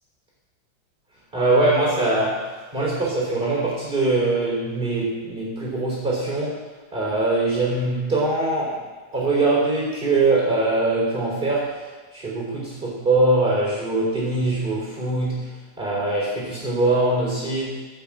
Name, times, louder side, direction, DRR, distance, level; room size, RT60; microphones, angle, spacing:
voice 1, 1.3-6.6 6.9-8.8 9.1-11.8 12.1-15.5 15.8-17.8, right 2 dB, 25° right, -5 dB, 3.7 m, -22 dB
8.9 x 7.6 x 7.3 m, 1.2 s
omnidirectional pair, 2.2 m